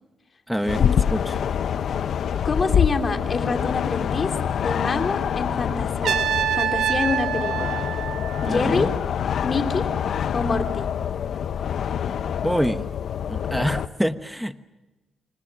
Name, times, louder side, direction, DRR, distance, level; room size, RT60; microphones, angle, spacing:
voice 1, 0.5-0.8 1.1-1.3 8.5-8.9 12.4-12.9 13.3-14.6, equal, ahead, 11 dB, 1.1 m, -26 dB
sound 1, 0.7-13.9, left 8 dB, 70° left, 1.0 m, -26 dB
voice 2, 2.4-6.2 6.5-7.8 8.4-8.9 9.4-9.8 10.3-10.9, left 4 dB, 40° left, 5 dB, 3.2 m, -26 dB
Trumpet, 6.0-9.0, right 9 dB, 80° right, 1.6 m, -26 dB
29.0 x 24.5 x 6.1 m, 1.1 s
cardioid pair, 105°, 0 cm